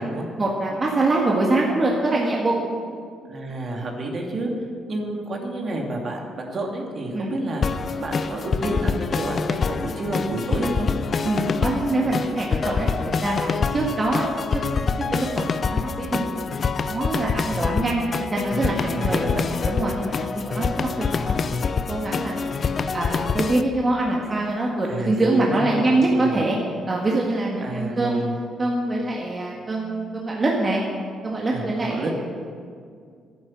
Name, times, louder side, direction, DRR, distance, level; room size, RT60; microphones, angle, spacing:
voice 1, 0.4-2.6 7.1-7.3 11.2-12.9 13.1-14.3 14.5-16.4 16.9-19.2 19.6-22.6 22.9-26.6 26.9-28.2 28.6-30.8 31.2-32.1, right 2 dB, 30° right, -2 dB, 1.9 m, -24 dB
voice 2, 3.3-4.5 4.9-10.9 13.7-13.9 17.5-17.6 18.9-19.4 24.8-25.9 26.1-26.5 27.6-28.3 31.5-32.1, right 1 dB, 50° right, 0 dB, 2.7 m, -29 dB
sound 1, 7.6-23.6, left 5 dB, 45° left, 0.6 m, -26 dB
11.5 x 10.5 x 7.6 m, 2.2 s
cardioid pair, 90°, 0 cm